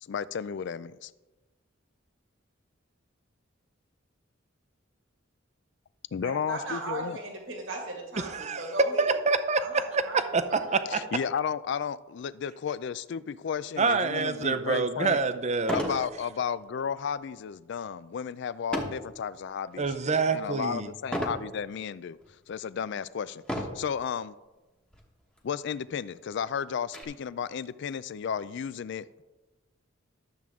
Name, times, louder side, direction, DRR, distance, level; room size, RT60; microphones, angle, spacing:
voice 1, 0.0-1.1 6.1-7.2 10.9-15.2 15.7-19.9 20.3-22.2 22.5-24.4 25.4-29.2, left 7 dB, 60° left, 17 dB, 0.3 m, -33 dB
voice 2, 6.2-9.1 9.6-10.8, right 2 dB, 70° right, 0 dB, 2.0 m, -37 dB
voice 3, 8.2-8.6 9.0-10.4 10.7-11.0 13.8-15.9 19.8-20.9, right 4 dB, 35° right, 10 dB, 0.6 m, -27 dB
sound 1, 14.7-14.8 15.6-16.1 16.5-16.8 18.7-19.1 19.7-20.1 21.1-21.5 22.2-22.3 23.4-23.9 24.9-25.0 25.4-25.5 25.9-27.0, equal, 5° left, 1.1 m, -33 dB
12.0 x 7.5 x 3.6 m, 1.1 s
head